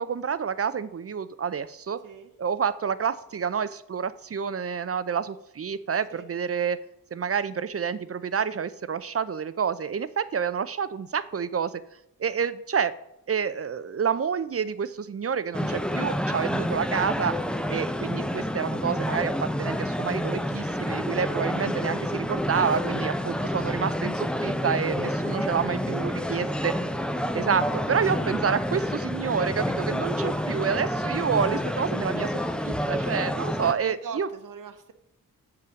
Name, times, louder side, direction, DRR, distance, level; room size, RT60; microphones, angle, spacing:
voice 1, 0.0-2.0 2.4-6.8 7.1-11.7 12.2-12.9 13.3-17.4 17.7-26.7 27.3-34.3, right 7 dB, 40° right, 15 dB, 0.6 m, -28 dB
sound 1, 15.5-33.7, equal, 5° left, 0.6 m, -29 dB
voice 2, 25.8-26.5 33.7-34.9, right 6 dB, 65° right, 8 dB, 0.9 m, -41 dB
6.8 x 5.6 x 6.3 m, 0.78 s
cardioid pair, 55°, 35 cm